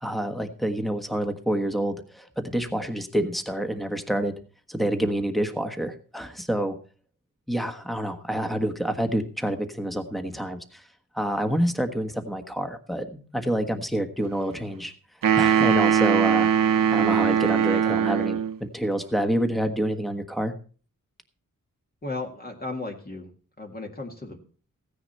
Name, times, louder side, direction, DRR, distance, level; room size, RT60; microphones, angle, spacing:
voice 1, 0.0-4.3 4.7-6.8 7.5-10.8 11.1-14.9 15.4-16.5 16.9-20.5, right 1 dB, ahead, 7 dB, 1.4 m, -27 dB
sound 1, 15.2-18.6, right 8 dB, 85° right, 0.9 m, -21 dB
voice 2, 22.0-23.3 23.6-24.4, left 2 dB, 30° left, 1 dB, 2.0 m, -35 dB
16.0 x 9.9 x 4.2 m, 0.40 s
wide cardioid pair, 140°, 32 cm